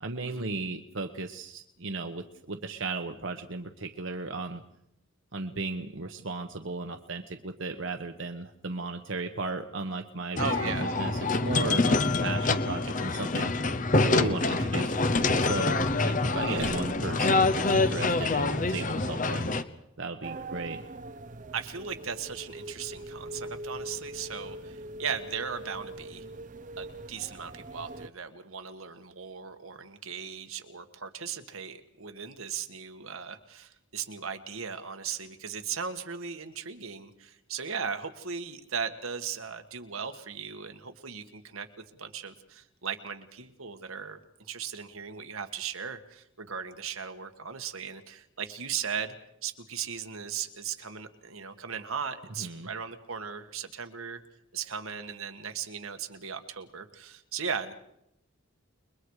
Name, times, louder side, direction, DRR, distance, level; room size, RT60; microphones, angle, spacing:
voice 1, 0.0-4.6 5.3-13.5 14.0-15.0 15.3-19.5 20.0-20.8 52.4-52.7, right 3 dB, 65° right, 5 dB, 1.2 m, -35 dB
sound 1, 10.4-19.6, left 3 dB, 40° left, 0.9 m, -26 dB
voice 2, 10.4-10.9 16.5-16.8 21.5-26.3 26.8-41.7 42.0-49.1 49.4-54.2 54.5-57.7, right 6 dB, 85° right, 6 dB, 1.8 m, -37 dB
sound 2, 20.2-28.1, right 1 dB, 40° right, 0.8 m, -42 dB
29.5 x 22.5 x 4.9 m, 0.81 s
head